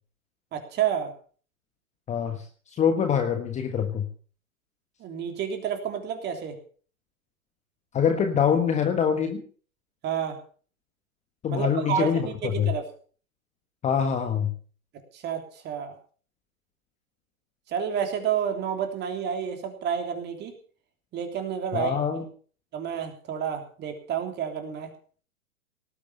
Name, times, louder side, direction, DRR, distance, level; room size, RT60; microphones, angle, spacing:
voice 1, 0.5-1.1 5.0-6.6 10.0-10.4 11.5-12.9 15.1-15.9 17.7-20.5 21.1-22.2 22.7-24.9, right 8 dB, 25° right, 6 dB, 3.3 m, -30 dB
voice 2, 2.1-2.4 2.8-4.1 7.9-9.4 11.4-12.3 12.6-12.7 13.8-14.5 21.7-22.2, left 7 dB, 15° left, 7 dB, 1.4 m, -24 dB
18.5 x 8.7 x 6.8 m, 0.43 s
hypercardioid pair, 125°, 42 cm